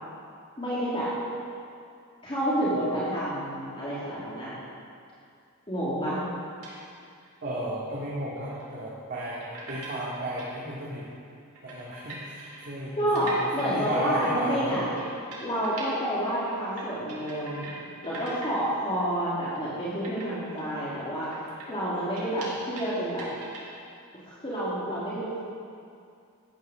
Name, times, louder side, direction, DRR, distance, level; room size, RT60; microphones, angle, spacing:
voice 1, 0.6-1.1 2.2-4.5 5.7-6.2 13.0-14.9 15.4-17.7 18.0-21.3 21.7-23.3 24.3-25.4, equal, 25° left, -9 dB, 3.1 m, -29 dB
sound 1, 6.6-6.8 7.2-7.3 8.5-8.6 9.4-10.5 10.9-11.0 11.3-11.4 11.5-15.9 16.2-17.8 18.0-18.6 18.9-19.0 19.5-19.7 20.0-22.9 23.2-23.8, right 2 dB, 70° right, 4.3 m, -42 dB
voice 2, 7.4-11.1 11.6-14.8, right 1 dB, 50° right, -8 dB, 2.7 m, -34 dB
14.5 x 10.0 x 6.5 m, 2.4 s
head